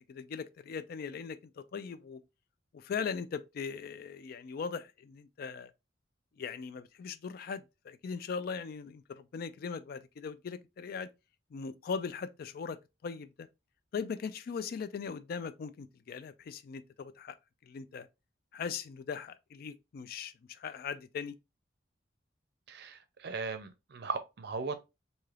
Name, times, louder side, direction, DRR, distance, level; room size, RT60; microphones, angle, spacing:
voice 1, 0.0-2.2 2.7-5.7 6.4-11.1 11.5-13.5 13.9-17.4 17.6-18.1 18.5-21.4, left 6 dB, 50° left, 0.3 m, -39 dB
voice 2, 22.7-24.8, right 4 dB, 60° right, 0.5 m, -38 dB
3.2 x 2.7 x 2.4 m
head